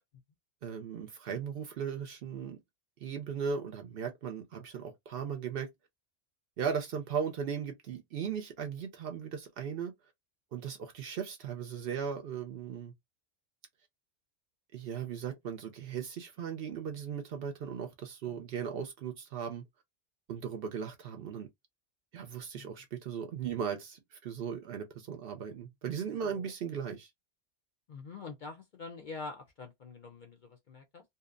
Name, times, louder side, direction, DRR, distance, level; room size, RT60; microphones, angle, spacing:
voice 1, 0.6-2.6 3.0-5.7 6.6-9.9 10.5-12.9 14.7-19.6 20.3-21.5 22.1-27.1, right 7 dB, 65° right, 0.7 m, -37 dB
voice 2, 26.2-26.5 27.9-31.0, left 4 dB, 55° left, 0.5 m, -45 dB
2.7 x 2.0 x 2.4 m
omnidirectional pair, 1.2 m